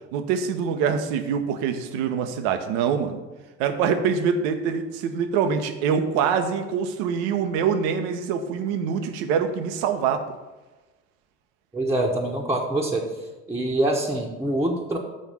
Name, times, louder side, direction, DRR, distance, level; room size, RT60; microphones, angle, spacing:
voice 1, 0.1-3.2 3.6-10.2, right 7 dB, 65° right, 7 dB, 0.9 m, -24 dB
voice 2, 11.7-13.1 13.5-15.0, right 1 dB, 5° right, -2 dB, 1.1 m, -25 dB
7.6 x 4.5 x 6.8 m, 1.1 s
figure-of-eight pair, 55°, 38 cm